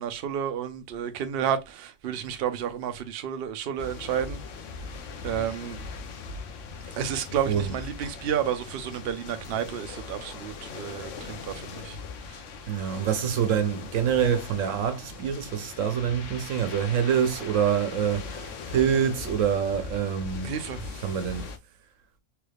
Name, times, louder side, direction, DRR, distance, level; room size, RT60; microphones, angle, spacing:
voice 1, 0.0-4.4 5.2-5.8 7.0-12.0 12.3-12.4 20.4-21.0, right 9 dB, 60° right, 0.7 m, -31 dB
sound 1, 3.8-21.6, left 4 dB, 75° left, 1.0 m, -40 dB
voice 2, 7.5-7.8 12.7-20.5 21.0-21.5, right 8 dB, 85° right, 1.1 m, -26 dB
3.4 x 3.4 x 2.3 m
omnidirectional pair, 1.3 m